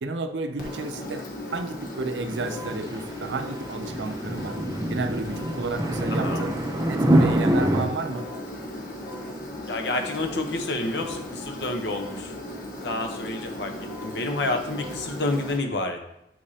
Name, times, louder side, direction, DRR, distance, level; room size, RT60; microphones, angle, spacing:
voice 1, 0.0-1.2 1.5-4.6 4.9-6.6 6.9-8.3, right 3 dB, 85° right, 9 dB, 0.6 m, -31 dB
Engine, 0.6-15.6, left 1 dB, 55° left, 1.2 m, -37 dB
sound 1, 2.3-7.8, right 1 dB, 20° right, 0.7 m, -25 dB
voice 2, 6.1-6.4 9.7-12.3 12.8-13.7 14.0-16.0, left 2 dB, 75° left, 5 dB, 0.9 m, -29 dB
7.7 x 5.0 x 2.9 m, 0.81 s
head